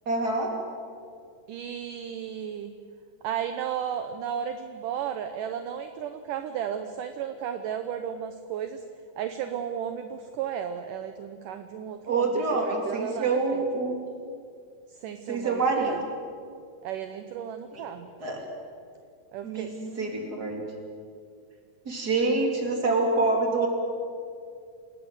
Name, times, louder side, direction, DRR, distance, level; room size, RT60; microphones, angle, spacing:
voice 1, 0.1-0.5 12.1-14.0 15.3-15.9 17.7-17.9 18.2-18.4 19.4-20.6 21.9-23.7, right 3 dB, 25° right, 1 dB, 4.0 m, -26 dB
voice 2, 1.5-2.7 3.2-8.8 9.2-13.6 14.9-16.0 16.8-18.1 19.3-20.7, right 9 dB, 70° right, 8 dB, 2.4 m, -34 dB
28.0 x 18.0 x 8.0 m, 2.4 s
omnidirectional pair, 4.2 m